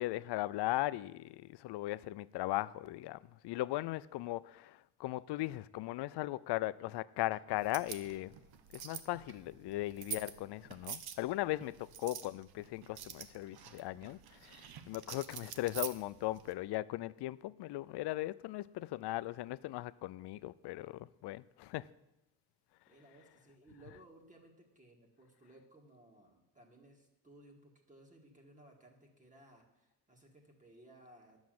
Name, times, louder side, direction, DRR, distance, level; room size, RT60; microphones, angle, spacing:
voice 1, 0.0-3.2 3.4-8.3 8.7-21.9, left 17 dB, 75° left, 0.5 m, -38 dB
sound 1, 7.6-16.5, right 9 dB, 65° right, 0.9 m, -47 dB
voice 2, 22.9-31.4, right 1 dB, 20° right, 1.9 m, -60 dB
10.5 x 7.2 x 7.7 m
cardioid pair, 150°, 41 cm